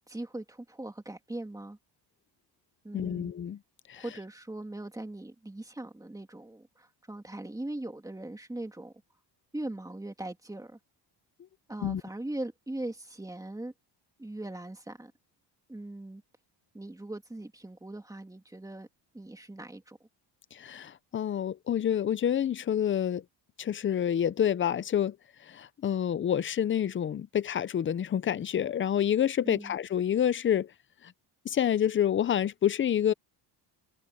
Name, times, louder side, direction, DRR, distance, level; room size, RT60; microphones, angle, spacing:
voice 1, 0.1-1.8 2.8-3.3 3.9-8.9 9.5-10.8 11.7-13.7 14.2-15.1 15.7-16.2 16.7-18.9 19.1-20.0 29.4-29.7, right 1 dB, 10° right, 2.4 m, -40 dB
voice 2, 2.9-3.6 3.9-4.0 11.8-12.0 20.5-23.2 23.6-25.2 25.4-30.7 31.0-31.1 31.4-33.1, left 9 dB, 30° left, 0.5 m, -28 dB
cardioid pair, 145°, 45 cm